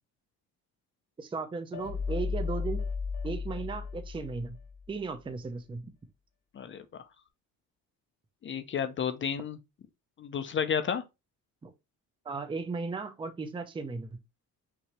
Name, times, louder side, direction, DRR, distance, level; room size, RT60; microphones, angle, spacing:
voice 1, 1.2-2.8 3.2-4.6 4.9-5.9 11.6-11.7 12.2-14.2, right 4 dB, 15° right, 0.6 m, -36 dB
sound 1, 1.7-4.9, left 5 dB, 65° left, 1.3 m, -34 dB
voice 2, 6.5-7.0 8.4-9.6 10.2-11.0, left 7 dB, 35° left, 0.5 m, -32 dB
5.9 x 2.7 x 3.0 m
cardioid pair, 140°, 34 cm